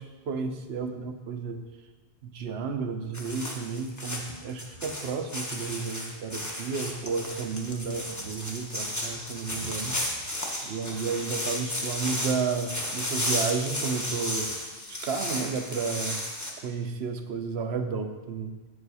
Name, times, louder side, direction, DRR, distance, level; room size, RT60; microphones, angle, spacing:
voice 1, 0.0-1.6 2.2-10.3 10.6-14.5 15.0-16.2 16.6-18.5, right 5 dB, 75° right, 7 dB, 0.9 m, -32 dB
sound 1, 3.1-16.5, left 1 dB, 15° left, 0.9 m, -33 dB
8.0 x 5.3 x 4.8 m, 1.4 s
omnidirectional pair, 1.1 m